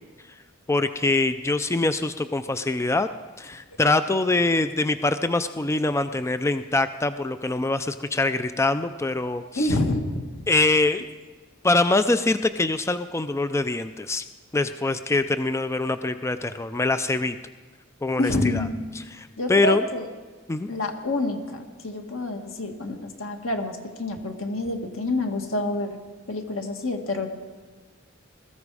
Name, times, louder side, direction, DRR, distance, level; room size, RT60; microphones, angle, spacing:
voice 1, 0.7-3.1 3.4-9.7 10.5-11.0 11.6-14.2 14.5-17.4 18.0-18.6 19.2-19.8 20.5-20.7, left 2 dB, 15° left, 11 dB, 0.4 m, -24 dB
voice 2, 9.6-10.2 18.2-18.8 19.4-20.1 20.7-26.0 26.3-27.3, left 2 dB, 80° left, 4 dB, 1.9 m, -27 dB
21.0 x 14.0 x 4.8 m, 1.4 s
head